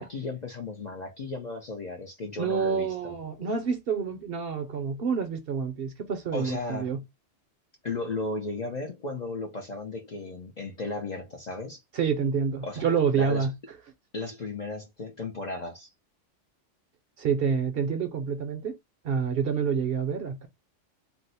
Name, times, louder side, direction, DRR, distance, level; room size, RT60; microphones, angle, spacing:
voice 1, 0.0-3.1 6.3-7.0 7.8-11.8 12.6-13.5 14.1-15.9, left 3 dB, 50° left, 0.5 m, -35 dB
voice 2, 2.4-7.0 11.9-13.5 17.2-18.8 19.0-20.5, right 6 dB, 60° right, 0.7 m, -28 dB
2.7 x 2.0 x 4.0 m
omnidirectional pair, 1.3 m